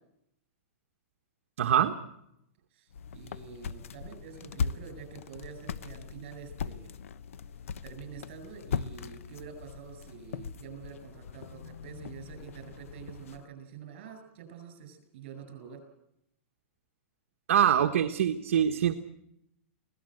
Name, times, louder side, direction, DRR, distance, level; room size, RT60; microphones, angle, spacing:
voice 1, 1.6-1.9 17.5-19.0, right 9 dB, 75° right, 5 dB, 1.3 m, -24 dB
voice 2, 2.7-7.0 7.8-15.9, right 7 dB, 50° right, 7 dB, 7.6 m, -47 dB
heavy barefoot on wood bip, 2.9-13.4, left 6 dB, 80° left, 1.0 m, -39 dB
24.0 x 17.5 x 7.9 m, 0.79 s
supercardioid pair, 165°, 7 cm